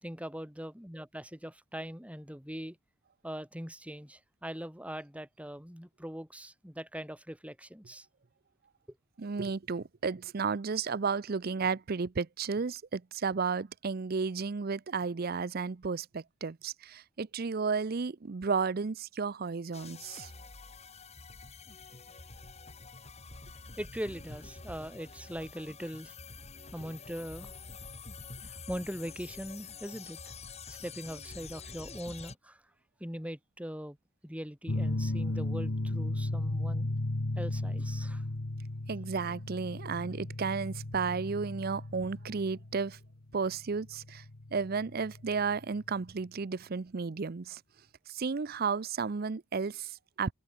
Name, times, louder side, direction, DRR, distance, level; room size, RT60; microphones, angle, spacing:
voice 1, 0.0-2.8 3.2-8.1 23.8-26.1 26.7-27.5 28.4-30.2 30.7-32.6 33.0-34.0 34.2-36.9 37.3-38.2, equal, 5° right, 4.6 m, -41 dB
voice 2, 9.2-20.3 38.9-43.0 43.3-44.2 44.5-47.6 48.1-50.3, right 5 dB, 50° right, 0.5 m, -33 dB
sound 1, 19.7-32.4, left 4 dB, 30° left, 2.4 m, -47 dB
sound 2, 34.7-45.9, left 1 dB, 80° left, 1.5 m, -35 dB
head